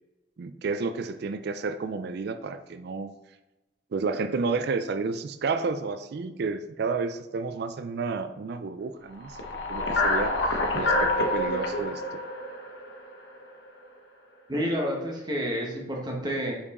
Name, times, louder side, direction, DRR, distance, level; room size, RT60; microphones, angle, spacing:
voice 1, 0.4-3.1 3.9-9.4 9.7-10.4 10.7-12.2, right 4 dB, 60° right, 10 dB, 0.4 m, -31 dB
sound 1, 9.2-13.5, left 2 dB, 75° left, 1.0 m, -27 dB
voice 2, 14.5-16.5, equal, 25° right, -1 dB, 1.1 m, -29 dB
5.4 x 4.5 x 4.1 m, 1.0 s
head